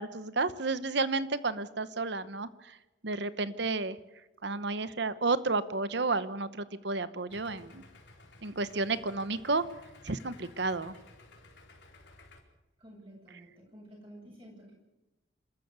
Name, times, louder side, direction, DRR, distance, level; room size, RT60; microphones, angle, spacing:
voice 1, 0.0-2.8 3.0-4.0 4.4-7.8 8.4-9.7 10.0-10.9, right 3 dB, 60° right, 14 dB, 1.0 m, -31 dB
Idling, 7.3-12.4, left 2 dB, 60° left, 4.5 m, -55 dB
voice 2, 12.8-14.7, right 1 dB, 25° right, -1 dB, 7.1 m, -51 dB
27.5 x 13.5 x 8.2 m, 1.0 s
head